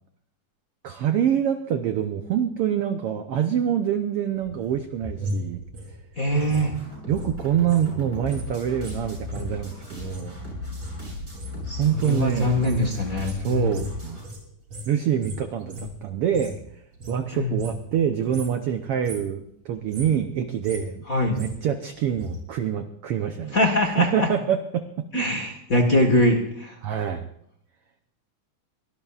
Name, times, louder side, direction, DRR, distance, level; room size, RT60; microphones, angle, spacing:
voice 1, 0.8-5.6 7.1-10.4 11.8-12.6 13.4-14.2 14.9-16.6 17.1-21.0 21.4-23.6 24.0-25.1 26.8-27.3, right 9 dB, 75° right, 7 dB, 1.3 m, -25 dB
sound 1, 4.3-7.9 8.1-16.6 16.9-18.0 18.2-18.6 18.9-19.4 19.7-22.4 22.7-22.8, equal, 50° right, 4.2 m, -38 dB
voice 2, 6.2-6.7 11.7-13.8 17.3-17.6 21.1-21.4 23.5-24.3 25.1-26.8, left 1 dB, 40° left, 2 dB, 1.2 m, -23 dB
sound 2, 6.3-14.2, left 2 dB, 30° right, 7.7 m, -36 dB
23.0 x 18.0 x 2.4 m, 0.72 s
omnidirectional pair, 3.5 m